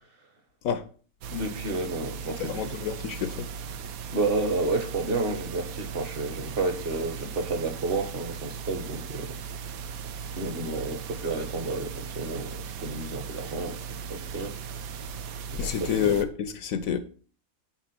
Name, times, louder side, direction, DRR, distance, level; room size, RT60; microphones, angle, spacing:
sound 1, 1.2-16.2, right 6 dB, 70° right, 1.1 m, -38 dB
voice 1, 1.3-2.8 4.1-9.4 10.4-14.7 15.5-15.9, right 3 dB, 40° right, 1.2 m, -31 dB
voice 2, 2.4-3.5 15.6-17.0, left 8 dB, 70° left, 1.0 m, -28 dB
6.0 x 4.2 x 5.8 m
omnidirectional pair, 1.6 m